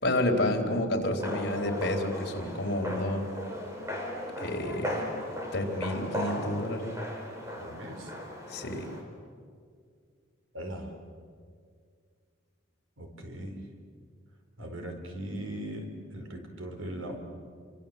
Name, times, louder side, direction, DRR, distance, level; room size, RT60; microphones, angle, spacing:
voice 1, 0.0-3.3 4.4-5.1 5.5-6.9 8.5-8.9, left 1 dB, 55° left, 2 dB, 4.0 m, -30 dB
sound 1, 1.2-9.0, equal, 15° right, 4.5 m, -37 dB
voice 2, 7.6-8.1 10.5-10.9 13.0-13.6 14.6-17.2, right 1 dB, 80° right, 4 dB, 4.6 m, -39 dB
30.0 x 24.0 x 8.0 m, 2.1 s
head